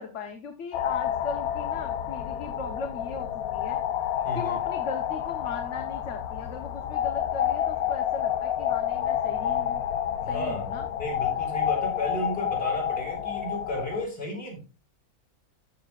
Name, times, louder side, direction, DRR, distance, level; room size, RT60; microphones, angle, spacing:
voice 1, 0.0-3.8 4.3-9.8 10.3-10.8, left 4 dB, 55° left, 4 dB, 1.3 m, -38 dB
sound 1, 0.7-14.1, left 10 dB, 80° left, 1.0 m, -29 dB
voice 2, 4.2-4.6 10.2-10.7 11.0-14.6, equal, 40° left, -1 dB, 5.1 m, -33 dB
13.0 x 7.1 x 2.4 m, 0.32 s
omnidirectional pair, 1.5 m